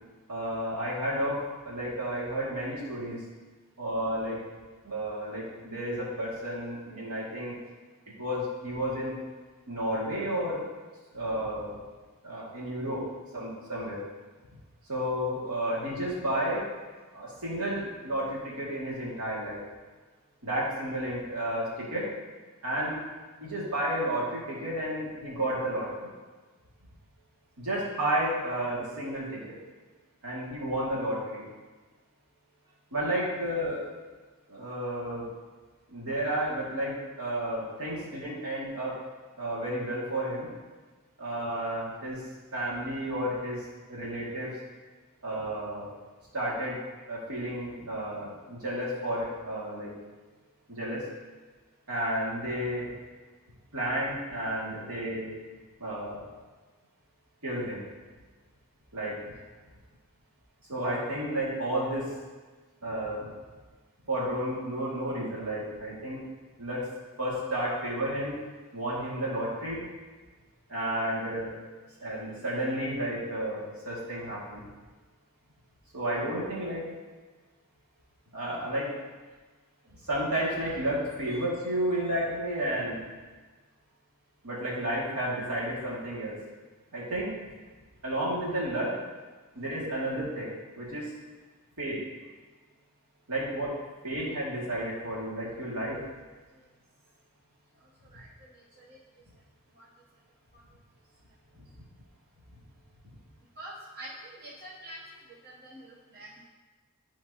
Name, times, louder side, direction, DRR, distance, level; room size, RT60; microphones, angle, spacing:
voice 1, 0.3-1.4 1.7-3.2 3.8-4.4 4.8-7.6 8.2-9.2 9.7-10.6 11.1-11.8 12.2-13.0 13.3-14.0 14.9-16.7 17.1-19.6 20.4-22.1 22.6-23.0 23.4-26.1 27.6-29.5 30.2-31.4 32.9-33.9 34.5-35.3 35.9-39.0 39.4-40.5 41.2-42.2 42.5-43.6 43.9-44.6 45.2-45.9 46.3-46.8 47.1-49.9 50.7-51.0 51.9-52.9 53.7-55.3 55.8-56.2 57.4-57.8 58.9-59.2 60.7-62.1 62.8-63.3 64.1-66.2 66.6-66.8 67.2-68.4 68.7-69.8 70.7-71.5 72.0-74.6 75.9-76.8 78.3-78.9 79.8-83.0 84.4-86.4 86.9-87.3 88.0-89.0 89.5-91.1 91.8-92.0 93.3-93.7 94.0-96.0, right 1 dB, 85° right, -6 dB, 2.2 m, -32 dB
voice 2, 103.6-105.0 105.4-106.5, right 1 dB, 45° right, -5 dB, 0.9 m, -45 dB
11.0 x 4.4 x 2.8 m, 1.3 s
head